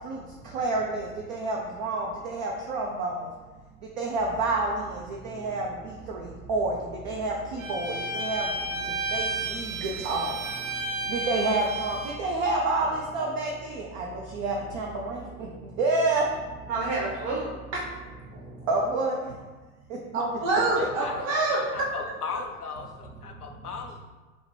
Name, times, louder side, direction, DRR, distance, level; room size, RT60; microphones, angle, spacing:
voice 1, 1.3-2.1 2.4-3.1 4.0-4.7 5.4-5.7 6.5-6.7 7.1-7.3 7.7-7.9 8.2-8.4 9.1-9.2 10.1-10.3 11.3-12.9 13.1-13.5 14.0-14.1 14.4-15.2 15.8-16.2 18.7-19.1, right 3 dB, 35° right, 0 dB, 0.4 m, -27 dB
sound 1, 4.2-19.0, right 2 dB, 20° right, 0.9 m, -46 dB
Bowed string instrument, 7.6-12.2, right 2 dB, 65° right, 0.7 m, -32 dB
voice 2, 16.7-17.8 20.1-21.9, right 2 dB, 50° right, -3 dB, 1.3 m, -27 dB
voice 3, 20.8-24.0, left 5 dB, 85° left, 3 dB, 0.6 m, -37 dB
5.3 x 2.1 x 3.1 m, 1.3 s
figure-of-eight pair, 85°, 44 cm